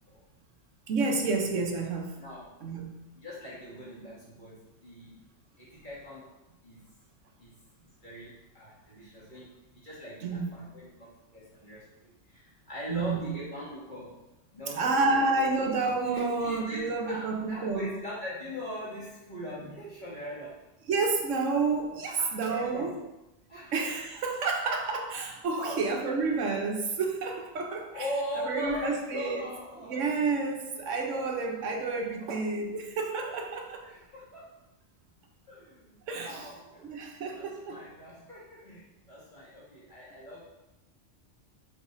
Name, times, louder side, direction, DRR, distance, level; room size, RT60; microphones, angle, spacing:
voice 1, 0.9-2.2 2.6-2.9 10.2-10.7 12.9-13.3 14.8-17.9 20.9-22.9 23.7-28.1 28.4-29.4 29.9-33.8 36.1-36.5 36.8-37.7, right 3 dB, 90° right, 2 dB, 1.2 m, -30 dB
voice 2, 2.2-2.6 3.2-5.2 5.6-6.3 6.6-6.8 7.4-7.5 7.8-14.2 14.5-15.3 16.1-20.6 22.1-22.9 23.5-23.7 25.6-26.1 27.9-30.5 31.2-31.6 33.2-33.4 33.8-34.6 35.5-40.4, left 1 dB, 40° left, -9 dB, 2.6 m, -41 dB
7.9 x 5.2 x 2.7 m, 0.97 s
omnidirectional pair, 1.2 m